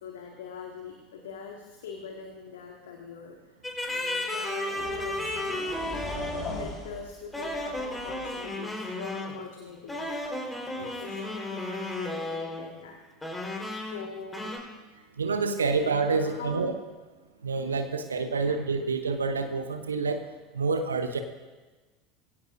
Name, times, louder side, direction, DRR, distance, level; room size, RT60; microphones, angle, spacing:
voice 1, 0.0-3.5 3.9-5.6 6.5-10.1 10.7-13.0 13.8-14.5 15.7-16.8 18.3-18.6, left 6 dB, 65° left, 1 dB, 1.7 m, -42 dB
sound 1, 3.6-6.6 7.3-9.4 9.9-12.7 13.2-14.0 14.3-14.6, left 1 dB, 10° left, 3.9 m, -33 dB
sound 2, 3.9-4.0 4.7-8.4, left 3 dB, 35° left, 3.9 m, -40 dB
voice 2, 15.2-16.7 17.4-20.2 20.5-21.2, right 4 dB, 80° right, 8 dB, 0.8 m, -27 dB
21.5 x 17.0 x 2.6 m, 1.3 s
figure-of-eight pair, 75°, 0 cm